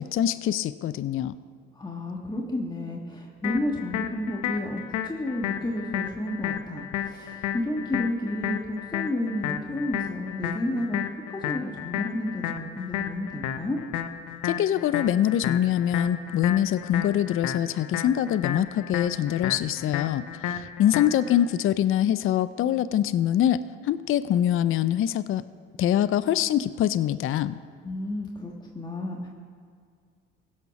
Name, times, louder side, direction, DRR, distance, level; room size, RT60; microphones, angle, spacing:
voice 1, 0.0-1.4 14.4-25.4 25.8-27.6, left 11 dB, 45° left, 15 dB, 0.5 m, -24 dB
voice 2, 1.7-13.8 20.5-20.7 27.8-29.3, left 1 dB, 15° left, -1 dB, 1.4 m, -31 dB
sound 1, 3.4-21.4, left 10 dB, 75° left, 0.8 m, -33 dB
16.0 x 6.5 x 5.9 m, 2.2 s
supercardioid pair, 70°, 30 cm